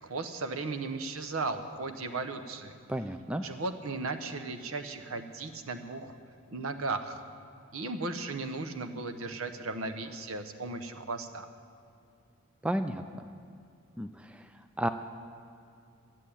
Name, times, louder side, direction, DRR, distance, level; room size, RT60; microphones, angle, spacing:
voice 1, 0.0-2.8 3.4-6.2 6.5-7.2 7.7-11.5, right 3 dB, 70° right, 8 dB, 0.9 m, -36 dB
voice 2, 2.9-3.4 12.6-13.3 14.0-14.5 14.8-14.9, right 1 dB, 5° right, 8 dB, 0.3 m, -32 dB
12.5 x 7.4 x 9.9 m, 2.5 s
head